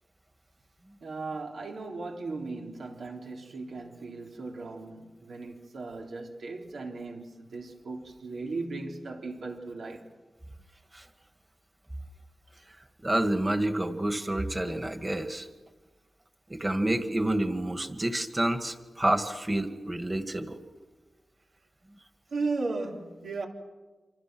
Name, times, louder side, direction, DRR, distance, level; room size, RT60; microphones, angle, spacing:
voice 1, 1.0-10.1 22.3-23.5, right 3 dB, 85° right, 3.6 m, -36 dB
voice 2, 12.7-15.5 16.5-20.6, right 1 dB, 20° right, 2.1 m, -29 dB
28.0 x 26.5 x 6.3 m
wide cardioid pair, 95°, 0 cm